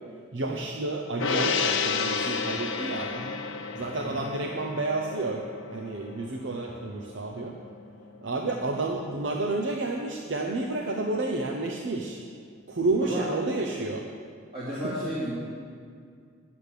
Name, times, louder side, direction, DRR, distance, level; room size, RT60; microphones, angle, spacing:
voice 1, 0.3-3.1 3.7-7.6 8.2-12.2 12.7-14.1 14.7-14.9, right 2 dB, 60° right, 1 dB, 0.8 m, -30 dB
Gong, 1.2-7.8 8.1-8.3, left 5 dB, 80° left, 0.9 m, -31 dB
voice 2, 14.5-15.3, equal, 30° right, -9 dB, 2.4 m, -33 dB
10.5 x 8.8 x 6.7 m, 2.2 s
head